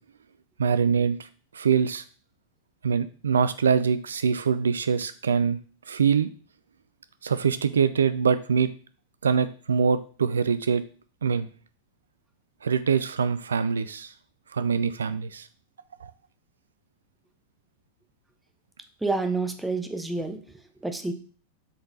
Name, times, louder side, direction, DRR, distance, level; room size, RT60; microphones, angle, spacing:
voice 1, 0.6-1.3 1.5-2.0 2.8-5.6 5.9-6.3 7.2-8.7 9.2-10.8 11.2-11.5 12.6-14.1 14.5-15.5 16.0-16.1, right 6 dB, 70° right, 14 dB, 0.3 m, -24 dB
voice 2, 19.0-21.1, right 3 dB, 5° right, 7 dB, 0.8 m, -29 dB
7.6 x 4.1 x 3.9 m, 0.41 s
figure-of-eight pair, 90°, 0 cm